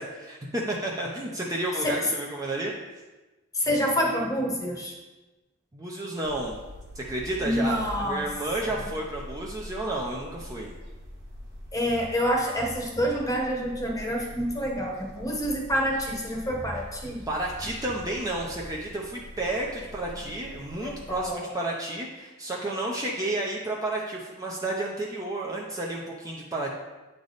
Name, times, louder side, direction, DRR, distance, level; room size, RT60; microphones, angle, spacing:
voice 1, 0.0-3.0 5.7-6.5 6.9-10.7 17.3-26.7, right 1 dB, 15° right, -3 dB, 0.6 m, -31 dB
voice 2, 3.5-5.0 7.4-8.3 8.6-8.9 11.7-17.2 20.8-21.5, equal, 15° left, -1 dB, 1.0 m, -27 dB
sound 1, 6.2-21.3, equal, 45° right, 1.4 m, -44 dB
8.4 x 3.4 x 4.0 m, 1.1 s
head